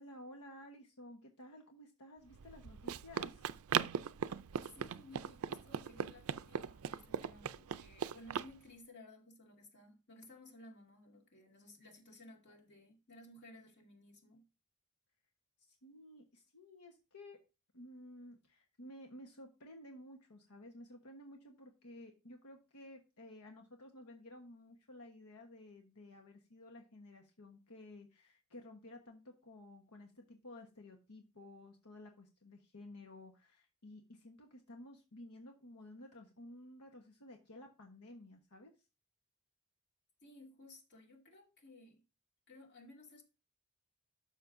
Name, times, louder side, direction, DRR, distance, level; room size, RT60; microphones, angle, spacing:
voice 1, 0.0-3.5 15.7-17.4 17.7-38.7, left 1 dB, 85° left, 1.2 m, -54 dB
Run, 2.3-8.5, right 7 dB, 70° right, 0.4 m, -39 dB
voice 2, 4.7-14.5 40.2-42.0 42.5-43.2, left 1 dB, 50° left, 2.3 m, -57 dB
12.0 x 6.4 x 2.6 m
head